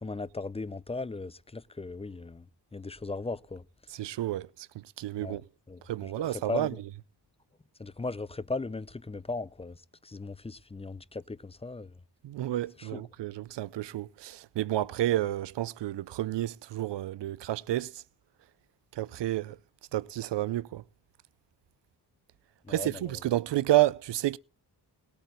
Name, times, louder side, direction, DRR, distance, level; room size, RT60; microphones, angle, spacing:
voice 1, 0.0-3.7 5.2-5.4 5.7-6.8 7.8-12.0 12.8-13.0 22.6-23.2, left 3 dB, 15° left, 0.5 m, -38 dB
voice 2, 3.9-5.4 5.8-6.7 12.2-18.0 18.9-19.6 19.9-20.8 22.7-24.4, right 14 dB, 90° right, 0.6 m, -30 dB
19.0 x 8.5 x 3.9 m
cardioid pair, 90°, 41 cm